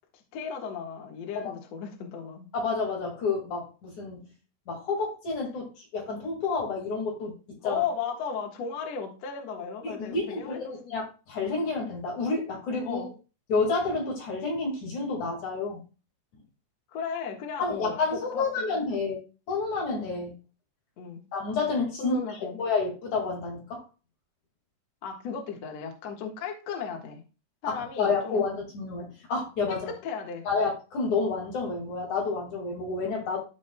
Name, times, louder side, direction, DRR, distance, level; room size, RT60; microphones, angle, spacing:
voice 1, 0.1-2.5 7.6-11.0 12.8-13.1 16.9-18.8 21.0-21.2 22.0-22.6 25.0-27.2 27.6-28.4 29.9-30.4, left 6 dB, 70° left, 2 dB, 1.5 m, -35 dB
voice 2, 2.5-4.3 4.7-7.3 7.6-7.8 9.8-10.6 10.9-13.1 13.5-15.8 17.6-19.2 19.5-20.3 21.3-22.2 22.6-23.8 27.7-29.9 30.4-33.4, left 4 dB, 50° left, -1 dB, 2.8 m, -29 dB
14.5 x 5.2 x 2.2 m, 0.32 s
omnidirectional pair, 5.4 m